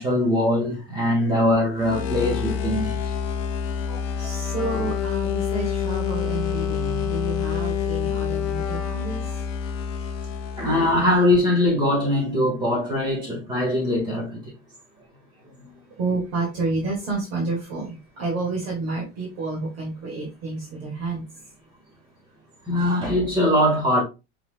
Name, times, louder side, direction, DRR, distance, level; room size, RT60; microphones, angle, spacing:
voice 1, 0.0-2.9 3.9-4.0 4.8-4.9 10.6-14.5 22.7-24.0, left 1 dB, 15° right, 1.6 m, -22 dB
sound 1, 1.8-11.3, left 7 dB, 35° left, 0.6 m, -27 dB
voice 2, 4.2-9.4 16.0-21.4, right 3 dB, 45° right, 2.0 m, -30 dB
5.6 x 4.0 x 2.2 m
supercardioid pair, 180°, 30 cm